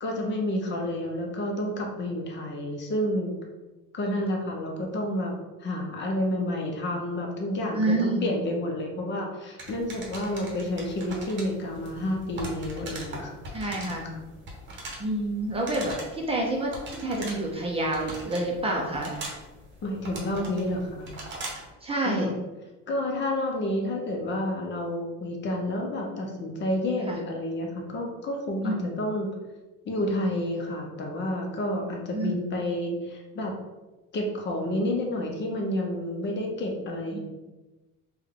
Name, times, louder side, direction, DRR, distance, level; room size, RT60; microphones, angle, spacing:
voice 1, 0.0-3.3 3.9-5.3 5.6-13.4 13.7-14.0 19.8-21.2 22.0-22.4 22.9-29.3 29.9-33.5 34.1-37.2, left 1 dB, 40° left, 1 dB, 0.6 m, -30 dB
voice 2, 7.7-8.3 13.5-14.1 15.0-19.1 21.8-22.3 27.1-27.2 28.6-28.9 32.1-32.3 37.1-37.2, right 2 dB, 20° right, -1 dB, 0.5 m, -28 dB
sound 1, 9.6-21.7, right 1 dB, 40° right, 0.9 m, -41 dB
3.5 x 2.2 x 3.5 m, 1.1 s
cardioid pair, 145°, 29 cm